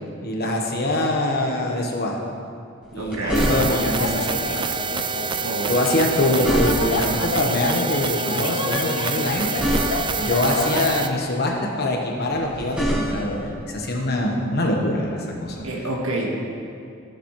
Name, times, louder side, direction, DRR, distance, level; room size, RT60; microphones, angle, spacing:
voice 1, 0.2-2.3 2.9-4.8 5.7-9.9 10.2-15.6, left 1 dB, 50° left, 0 dB, 1.2 m, -24 dB
sound 1, 2.8-4.0 6.0-7.1 9.1-10.3 12.3-13.5 15.4-15.6, equal, 5° right, 2.3 m, -26 dB
voice 2, 2.9-3.5 5.4-5.8 15.6-16.3, right 2 dB, 85° right, -2 dB, 1.6 m, -28 dB
sound 2, 3.3-11.1, right 5 dB, 25° right, 0.3 m, -27 dB
sound 3, 3.6-11.0, left 4 dB, 70° left, 0.6 m, -30 dB
15.0 x 6.9 x 3.2 m, 2.5 s
head